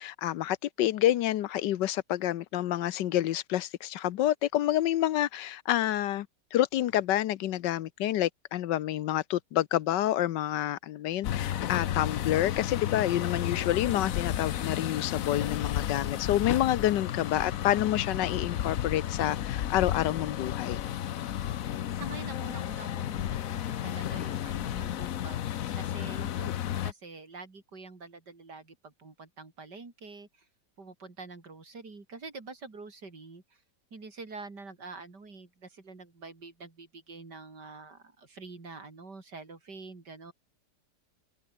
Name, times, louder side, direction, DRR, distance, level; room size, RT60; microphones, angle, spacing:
voice 1, 0.0-6.3 6.5-20.8, left 13 dB, 80° left, 1.4 m, -28 dB
sound 1, 11.2-26.9, left 11 dB, 60° left, 1.1 m, -32 dB
voice 2, 21.9-26.5 26.8-30.5 30.8-33.4 33.9-40.3, right 3 dB, 70° right, 4.5 m, -46 dB
omnidirectional pair, 1.9 m